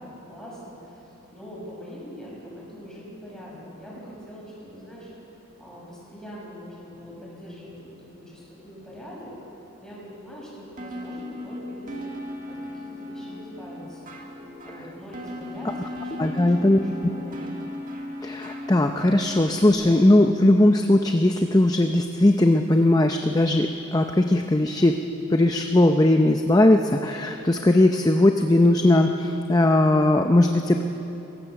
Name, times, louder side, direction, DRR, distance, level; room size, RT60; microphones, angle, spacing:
voice 1, 0.0-5.1 5.6-9.3 9.8-12.1 12.5-14.1 14.6-17.5, equal, 5° left, -6 dB, 6.8 m, -42 dB
sound 1, 10.8-19.7, left 1 dB, 40° right, 2.0 m, -37 dB
voice 2, 16.2-16.8 18.2-25.0 25.3-30.8, left 1 dB, 20° left, 5 dB, 0.6 m, -19 dB
22.5 x 17.5 x 7.0 m, 3.0 s
head